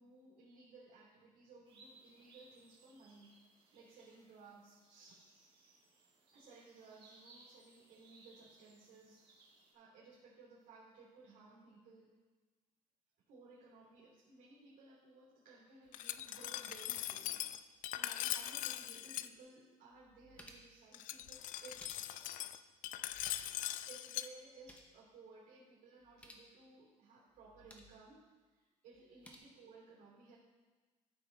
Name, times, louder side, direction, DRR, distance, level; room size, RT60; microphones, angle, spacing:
voice 1, 0.0-3.3 3.7-5.2 6.3-9.2 9.7-12.1 13.3-22.4 23.7-28.2 28.5-30.4, right 3 dB, 80° right, -5 dB, 3.0 m, -59 dB
sound 1, 1.6-9.7, right 2 dB, 35° right, 1.9 m, -65 dB
Glass, 15.9-19.3 20.9-24.3, left 13 dB, 70° left, 0.4 m, -41 dB
sound 2, 19.4-19.5 19.9-20.8 21.5-22.4 23.0-23.7 23.9-24.0 24.4-25.0 26.0-26.5 27.3-28.0 28.9-29.4, left 1 dB, 10° left, 0.9 m, -59 dB
13.5 x 5.9 x 3.9 m, 1.3 s
cardioid pair, 165°, 14 cm